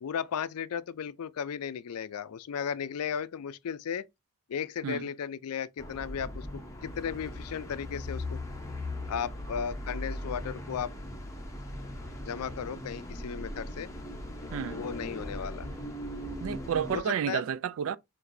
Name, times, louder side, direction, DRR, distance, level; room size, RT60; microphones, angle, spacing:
voice 1, 0.0-4.1 4.5-8.4 9.1-10.9 12.2-13.9 14.7-15.7 16.9-17.4, left 7 dB, 85° left, 0.4 m, -35 dB
sound 1, 5.8-17.0, left 1 dB, 15° left, 0.8 m, -39 dB
voice 2, 16.4-18.0, right 8 dB, 65° right, 0.3 m, -31 dB
5.8 x 2.6 x 2.6 m
head